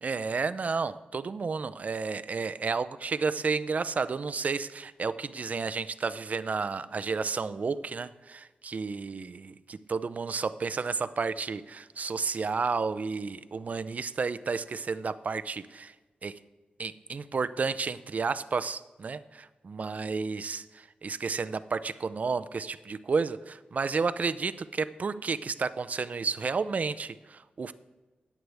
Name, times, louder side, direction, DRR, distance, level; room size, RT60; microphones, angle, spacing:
voice 1, 0.0-15.9 16.2-16.4 16.8-27.7, right 4 dB, 50° right, 14 dB, 0.5 m, -31 dB
14.0 x 9.5 x 3.4 m, 1.2 s
wide cardioid pair, 90°, 3 cm